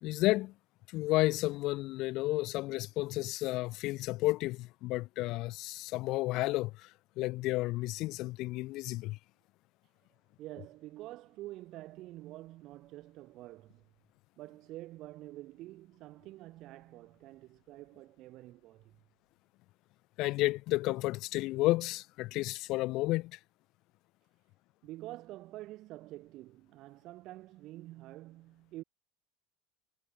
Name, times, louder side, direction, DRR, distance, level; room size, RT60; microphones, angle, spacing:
voice 1, 0.0-0.5 0.9-6.9 7.2-9.2 20.2-23.4, left 19 dB, 55° left, 0.5 m, -32 dB
voice 2, 10.4-13.8 14.4-19.0 24.8-28.8, right 17 dB, 55° right, 2.4 m, -47 dB
hypercardioid pair, 75°, 0 cm